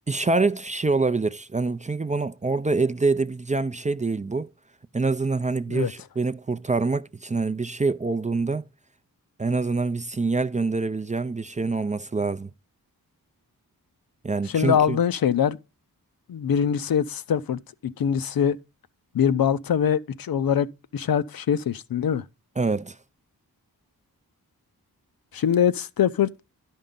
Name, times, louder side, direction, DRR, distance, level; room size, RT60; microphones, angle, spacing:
voice 1, 0.1-4.5 4.9-8.6 9.4-12.5 14.2-15.0 22.6-23.0, right 3 dB, 20° right, 0.4 m, -25 dB
voice 2, 14.5-15.6 16.3-18.6 19.1-22.2 25.3-26.4, left 8 dB, 75° left, 0.6 m, -23 dB
11.5 x 5.5 x 3.7 m
wide cardioid pair, 70°, 36 cm